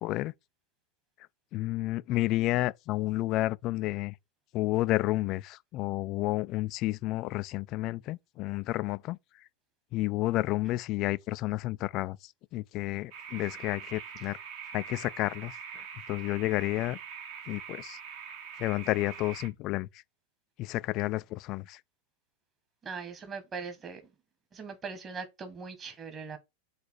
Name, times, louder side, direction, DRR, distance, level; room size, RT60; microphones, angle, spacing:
voice 1, 0.0-0.3 1.5-4.1 4.5-9.2 9.9-14.4 14.7-17.0 17.5-18.0 18.6-19.9 20.6-21.8, left 18 dB, 40° left, 0.4 m, -31 dB
sound 1, 13.1-19.5, right 7 dB, 45° right, 1.5 m, -44 dB
voice 2, 22.8-24.0 24.5-26.4, right 5 dB, 25° right, 1.7 m, -40 dB
6.7 x 4.1 x 4.4 m
figure-of-eight pair, 90°, 0 cm